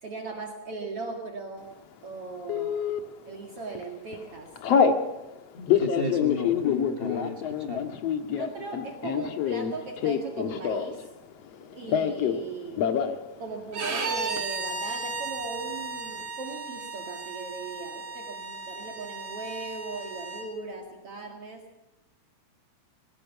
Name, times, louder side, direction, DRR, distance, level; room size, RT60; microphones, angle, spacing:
voice 1, 0.0-1.7 2.0-2.8 3.3-4.5 8.4-11.1 11.7-12.8 13.4-21.6, right 3 dB, 55° right, 2 dB, 2.8 m, -38 dB
Telephone, 2.5-3.0 3.6-3.8 4.1-5.0 5.5-11.1 11.3-12.4 12.7-13.2 13.5-13.6 13.8-14.4, left 7 dB, 60° left, 2.4 m, -26 dB
voice 2, 5.7-7.9, left 3 dB, 40° left, 3 dB, 0.8 m, -33 dB
Bowed string instrument, 13.7-20.5, right 3 dB, 75° right, 4.8 m, -35 dB
23.0 x 17.0 x 7.2 m, 0.98 s
omnidirectional pair, 3.4 m